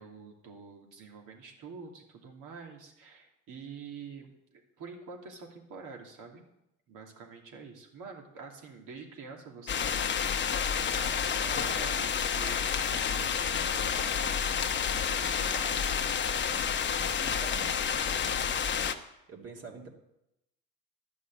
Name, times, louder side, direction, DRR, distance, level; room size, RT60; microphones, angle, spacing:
voice 1, 0.0-6.4 6.9-14.7 15.1-16.5, right 5 dB, 65° right, 1 dB, 2.8 m, -47 dB
sound 1, 9.7-18.9, left 7 dB, 35° left, 1.0 m, -29 dB
voice 2, 17.2-17.8 19.3-19.9, right 4 dB, 45° right, 1 dB, 2.5 m, -45 dB
11.5 x 6.2 x 9.1 m, 0.87 s
cardioid pair, 100°, 33 cm